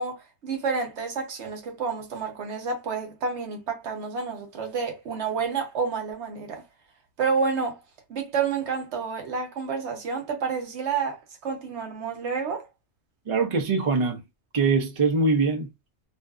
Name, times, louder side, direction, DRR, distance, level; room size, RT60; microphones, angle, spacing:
voice 1, 0.0-6.6 7.2-7.8 8.1-12.7, right 5 dB, 70° right, 1.0 m, -29 dB
voice 2, 13.3-14.2 14.5-15.7, right 4 dB, 40° right, 0.5 m, -23 dB
2.6 x 2.4 x 2.3 m
omnidirectional pair, 1.2 m